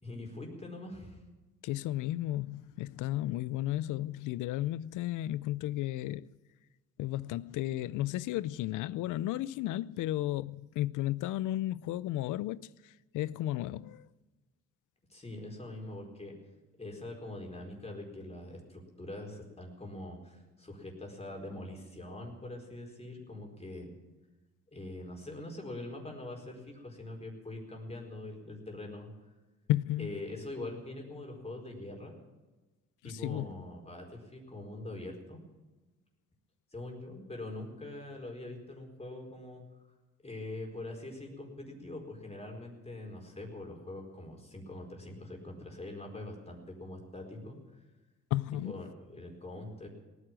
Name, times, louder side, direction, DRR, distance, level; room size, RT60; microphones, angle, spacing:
voice 1, 0.0-1.2 15.1-16.3 16.8-23.9 24.7-29.1 30.0-32.1 33.0-35.4 36.7-39.6 40.2-47.6 48.6-49.9, left 2 dB, 20° left, 4.5 m, -43 dB
voice 2, 1.6-6.3 7.0-12.7 13.1-14.1 29.7-30.1 33.2-33.5 48.3-48.7, left 14 dB, 85° left, 0.6 m, -33 dB
18.5 x 9.8 x 7.5 m
cardioid pair, 90°, 30 cm